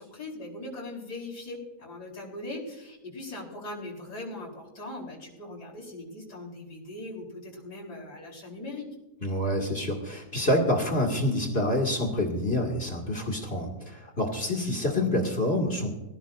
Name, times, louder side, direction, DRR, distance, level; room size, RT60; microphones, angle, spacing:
voice 1, 0.0-8.9, left 2 dB, 85° left, -4 dB, 4.7 m, -40 dB
voice 2, 9.2-16.0, left 1 dB, 40° left, 2 dB, 2.2 m, -27 dB
20.0 x 15.5 x 2.5 m, 0.96 s
omnidirectional pair, 1.7 m